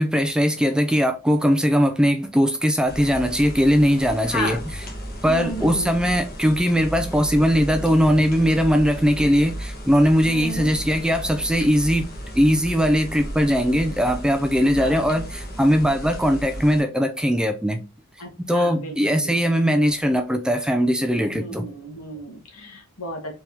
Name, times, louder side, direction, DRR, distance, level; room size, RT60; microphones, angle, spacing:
voice 1, 0.0-4.6 5.2-17.8 18.4-21.7, equal, 5° right, 0.3 m, -20 dB
sound 1, 2.9-16.8, equal, 40° left, 1.2 m, -34 dB
voice 2, 4.3-4.6 5.2-5.9 10.3-10.7 14.8-15.0 18.2-19.6 21.3-23.4, left 1 dB, 80° left, 1.7 m, -33 dB
4.4 x 3.5 x 2.8 m
head